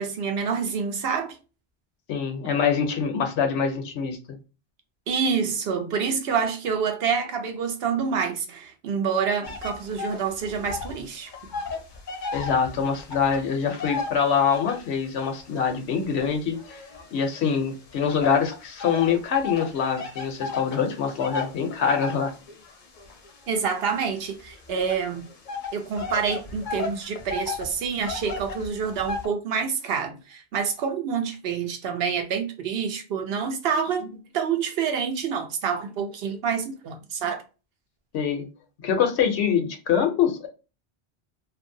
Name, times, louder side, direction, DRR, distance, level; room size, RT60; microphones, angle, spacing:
voice 1, 0.0-1.4 5.1-11.3 23.5-25.2 25.7-37.4, right 6 dB, 70° right, 0.8 m, -27 dB
voice 2, 2.1-4.2 12.3-16.6 17.1-22.3 38.1-38.4 38.8-40.5, left 7 dB, 80° left, 0.9 m, -24 dB
sound 1, 9.4-11.0 11.3-14.9 15.5-17.6 18.2-29.3, left 4 dB, 55° left, 0.6 m, -35 dB
2.7 x 2.5 x 2.6 m
omnidirectional pair, 1.1 m